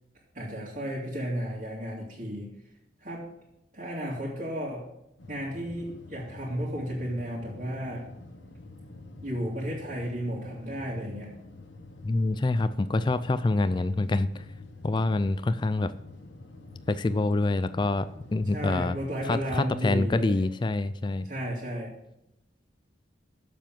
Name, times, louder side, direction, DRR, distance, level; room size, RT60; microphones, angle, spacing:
voice 1, 0.3-2.5 3.0-3.3 3.7-4.9 5.3-8.1 9.2-11.3 18.4-20.4 21.2-21.9, equal, 40° right, -7 dB, 2.3 m, -33 dB
sound 1, 5.2-19.4, left 2 dB, 75° left, 1.3 m, -47 dB
voice 2, 12.0-14.5 14.8-15.9 16.9-19.0 19.3-21.3, left 2 dB, 25° left, 13 dB, 0.3 m, -26 dB
7.4 x 7.1 x 7.5 m, 0.83 s
head